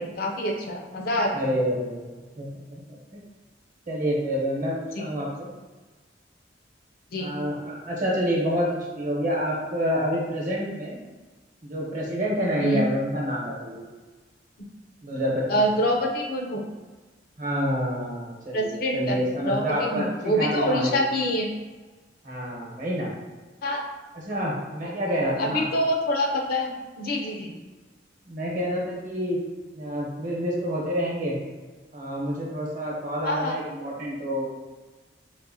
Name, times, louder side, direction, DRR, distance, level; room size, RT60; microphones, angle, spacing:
voice 1, 0.0-1.4 5.0-5.1 7.1-7.3 12.6-12.8 15.5-16.6 18.5-21.5 23.6-23.8 24.8-24.9 25.4-27.6 33.2-33.6, equal, 55° left, 1 dB, 0.5 m, -26 dB
voice 2, 1.3-3.2 3.9-5.5 7.2-11.0 11.6-13.8 15.0-15.4 17.4-21.0 22.2-23.1 24.1-25.6 28.2-29.4 29.7-31.4 31.9-34.4, equal, 45° right, -4 dB, 0.9 m, -28 dB
4.0 x 2.6 x 2.6 m, 1.3 s
head